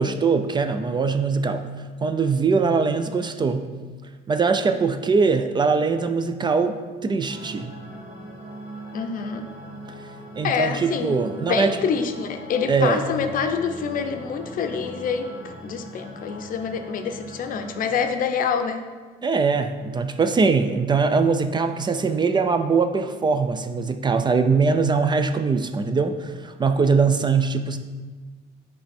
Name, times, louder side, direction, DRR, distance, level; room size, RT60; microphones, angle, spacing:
voice 1, 0.0-1.7 2.0-3.7 4.3-7.7 10.4-11.7 12.7-13.0 19.2-27.8, right 4 dB, 25° right, 8 dB, 0.4 m, -22 dB
sound 1, 7.3-18.1, equal, 50° right, 2.0 m, -41 dB
voice 2, 8.9-9.4 10.4-18.8, left 6 dB, 55° left, 7 dB, 0.6 m, -26 dB
9.4 x 3.4 x 4.3 m, 1.4 s
cardioid pair, 110°, 17 cm